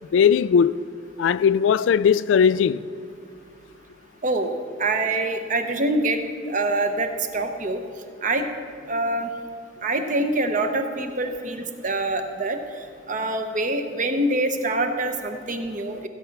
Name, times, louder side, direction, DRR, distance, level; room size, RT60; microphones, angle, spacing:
voice 1, 0.1-0.7 1.2-2.8, left 7 dB, 80° left, 0.3 m, -18 dB
voice 2, 4.8-6.2 6.5-7.8 8.2-8.5 8.9-9.3 9.8-12.6 13.1-16.1, right 2 dB, 40° right, 0.9 m, -25 dB
15.0 x 8.2 x 5.9 m
head